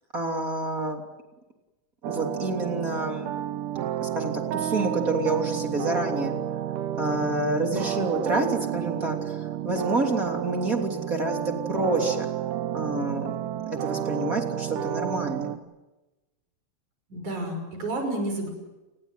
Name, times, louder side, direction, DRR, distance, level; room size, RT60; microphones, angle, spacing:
voice 1, 0.1-1.0 2.0-3.3 4.0-6.3 7.0-12.3 12.7-13.4 13.6-15.6, right 2 dB, 25° right, 3 dB, 3.3 m, -28 dB
sound 1, 2.0-15.6, right 11 dB, 75° right, 2.6 m, -31 dB
voice 2, 17.1-18.5, right 1 dB, 60° right, 5 dB, 7.3 m, -31 dB
30.0 x 20.5 x 9.3 m, 1.1 s
omnidirectional pair, 3.9 m